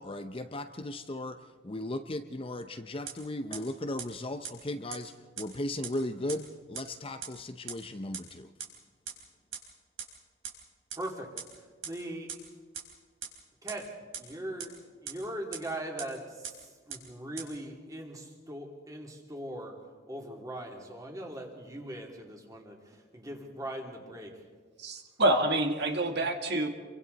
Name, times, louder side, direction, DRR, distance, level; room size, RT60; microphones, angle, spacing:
voice 1, 0.0-8.5, left 1 dB, 25° left, 8 dB, 0.7 m, -37 dB
sound 1, 3.1-3.2 3.5-3.6 4.0-4.1 4.4-4.5 4.9-5.0 5.4-5.5 5.8-5.9 6.3-6.4 6.7-6.8 7.2-7.3 7.7-7.8 8.1-8.2 8.6-8.7 9.1-9.2 9.5-9.6 10.0-10.1 10.4-10.5 10.9-11.0 11.4-11.5 11.8-11.9 12.3-12.4 12.7-12.8 13.2-13.3 13.7-13.8 14.1-14.2 14.6-14.7 15.1-15.2 15.5-15.6 16.0-16.1 16.4-16.5 16.9-17.0 17.4-17.5, right 7 dB, 80° right, 4.0 m, -37 dB
voice 2, 11.0-12.3 13.6-24.4, right 1 dB, 15° right, 0 dB, 3.0 m, -40 dB
voice 3, 24.8-26.7, right 1 dB, 55° right, 4 dB, 1.8 m, -27 dB
28.5 x 24.0 x 4.1 m, 1.5 s
head